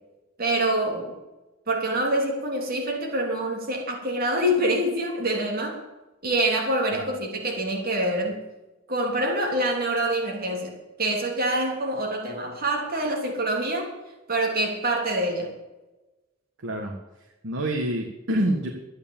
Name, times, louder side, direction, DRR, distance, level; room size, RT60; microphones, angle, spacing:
voice 1, 0.4-1.1 1.7-5.8 6.2-8.4 8.9-13.9 14.3-15.5, right 1 dB, 45° right, 1 dB, 3.1 m, -26 dB
voice 2, 16.6-16.9 17.4-18.7, right 1 dB, 65° right, 1 dB, 1.7 m, -26 dB
12.5 x 9.9 x 7.3 m, 1.1 s
head